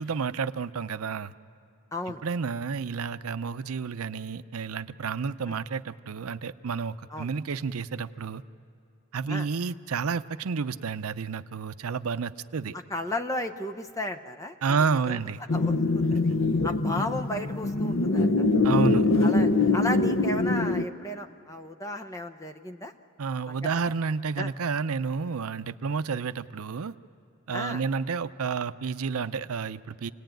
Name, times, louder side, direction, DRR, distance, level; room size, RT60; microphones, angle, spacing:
voice 1, 0.0-1.3 2.2-8.4 9.1-12.7 14.6-15.4 18.6-19.1 23.2-26.9 27.5-30.1, right 5 dB, 80° right, 12 dB, 0.6 m, -30 dB
voice 2, 1.9-2.2 5.5-5.6 7.1-7.3 9.3-9.5 12.7-15.2 15.5-16.3 16.6-18.5 19.2-22.9 23.5-23.9 24.4-24.5 27.5-27.8, left 1 dB, 15° left, 5 dB, 0.8 m, -34 dB
sound 1, 15.5-20.8, left 3 dB, 60° left, 0.8 m, -23 dB
28.0 x 18.5 x 9.1 m, 2.5 s
head